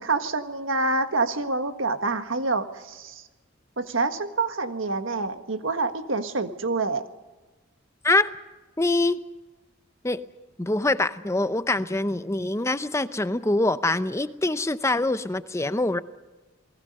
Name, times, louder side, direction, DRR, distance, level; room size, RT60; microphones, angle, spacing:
voice 1, 0.0-3.2 3.8-7.1, right 3 dB, 75° right, 8 dB, 1.6 m, -27 dB
voice 2, 8.8-9.2 10.0-10.2 10.6-16.0, left 2 dB, 15° left, 13 dB, 0.7 m, -24 dB
28.0 x 20.0 x 5.4 m, 1.2 s
head